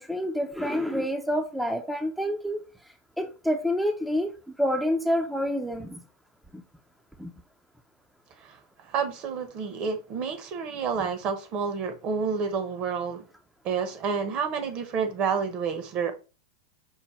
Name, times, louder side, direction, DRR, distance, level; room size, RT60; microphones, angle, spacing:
voice 1, 0.0-2.6 3.2-4.3 4.6-6.0 6.5-6.6 7.2-7.3, equal, ahead, 0.5 m, -27 dB
voice 2, 8.9-13.2 13.6-16.1, right 6 dB, 40° right, 0.8 m, -29 dB
5.6 x 2.1 x 4.2 m
supercardioid pair, 130°, 3 cm